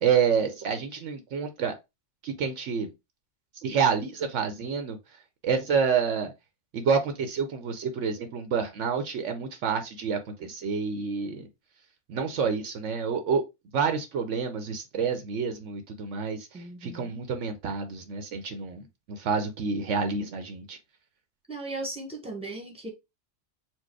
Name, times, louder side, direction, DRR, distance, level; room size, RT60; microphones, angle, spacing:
voice 1, 0.0-1.7 2.2-2.9 3.6-5.0 5.4-6.3 6.7-11.5 12.1-13.4 13.7-16.5 16.8-20.8, right 6 dB, 75° right, 1.0 m, -28 dB
voice 2, 16.5-17.1 21.5-22.9, right 2 dB, 5° right, 1.3 m, -37 dB
4.5 x 2.2 x 4.6 m
omnidirectional pair, 1.3 m